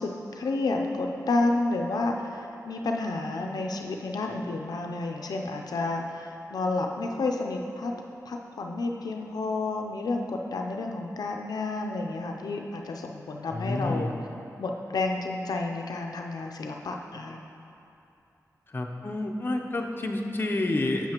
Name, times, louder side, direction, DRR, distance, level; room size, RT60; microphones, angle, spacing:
voice 1, 0.0-7.9 8.3-14.1 14.6-17.4, left 2 dB, 85° left, 2 dB, 0.5 m, -30 dB
voice 2, 13.5-14.1 18.7-21.1, left 2 dB, 35° left, 1 dB, 0.6 m, -29 dB
7.6 x 7.0 x 2.9 m, 2.7 s
wide cardioid pair, 80°, 6 cm